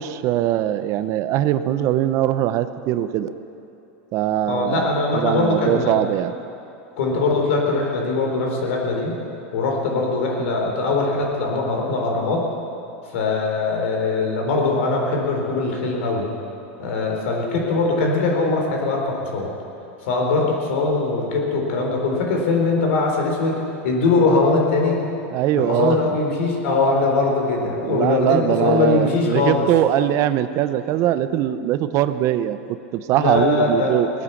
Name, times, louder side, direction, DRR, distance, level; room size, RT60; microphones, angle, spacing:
voice 1, 0.0-3.3 4.1-4.9 5.1-6.3 25.3-26.0 27.8-34.1, right 12 dB, 45° right, 12 dB, 0.7 m, -21 dB
voice 2, 4.5-6.0 7.0-9.1 9.5-12.4 13.1-16.3 16.8-19.5 20.1-23.6 23.8-25.0 25.6-29.7 33.1-33.9, left 3 dB, 75° left, 0 dB, 4.0 m, -21 dB
19.5 x 9.7 x 7.1 m, 2.9 s
supercardioid pair, 120°, 7 cm